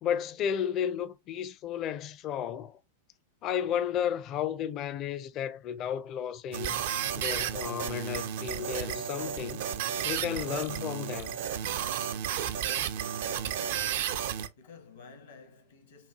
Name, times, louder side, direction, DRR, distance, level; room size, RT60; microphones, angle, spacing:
voice 1, 0.0-2.8 3.4-6.8 7.2-9.6 10.0-11.4, left 9 dB, 35° left, 0.5 m, -33 dB
sound 1, 6.5-14.5, right 9 dB, 55° right, 0.4 m, -32 dB
voice 2, 13.2-14.2 14.6-16.1, left 5 dB, 70° left, 1.1 m, -53 dB
5.5 x 2.3 x 2.9 m
figure-of-eight pair, 95°, 0 cm